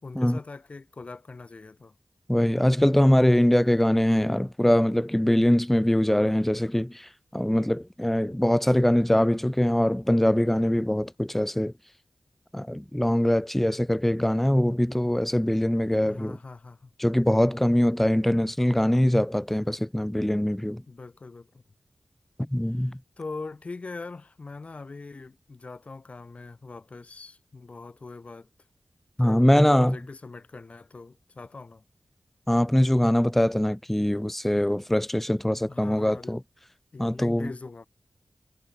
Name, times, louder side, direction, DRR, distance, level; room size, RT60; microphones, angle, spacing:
voice 1, 0.0-1.9 8.0-8.4 16.0-16.9 20.9-21.6 22.7-28.5 29.2-31.8 35.7-36.4 36.9-37.9, left 3 dB, 50° left, 6.5 m, -42 dB
voice 2, 2.3-6.9 7.3-11.7 12.5-16.4 17.0-20.8 22.5-23.0 29.2-30.0 32.5-36.4 37.0-37.5, left 1 dB, 5° left, 1.1 m, -22 dB
wide cardioid pair, 65°, 3 cm